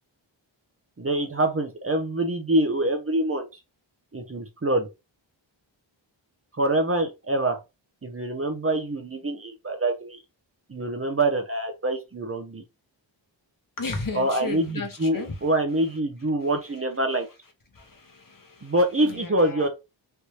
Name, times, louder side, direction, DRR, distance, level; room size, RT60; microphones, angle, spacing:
voice 1, 1.0-3.5 4.1-4.9 6.6-7.6 8.0-10.2 10.7-12.6 14.1-17.3 18.6-19.7, right 1 dB, 30° right, 0.8 m, -25 dB
voice 2, 13.8-15.5 17.7-18.7 19.0-19.7, left 3 dB, 45° left, 1.0 m, -35 dB
3.3 x 2.7 x 3.0 m
wide cardioid pair, 75°, 47 cm